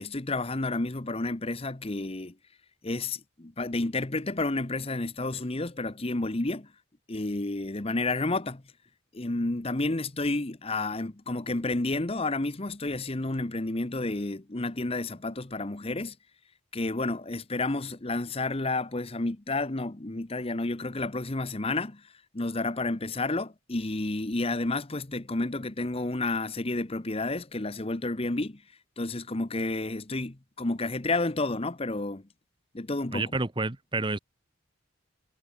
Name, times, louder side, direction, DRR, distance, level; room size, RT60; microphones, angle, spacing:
voice 1, 0.0-2.3 2.8-6.7 7.1-8.6 9.1-16.1 16.7-22.0 22.3-28.6 29.0-32.2 32.7-33.2, left 2 dB, 30° left, 1.0 m, -30 dB
voice 2, 33.1-34.2, right 3 dB, 25° right, 1.0 m, -29 dB
head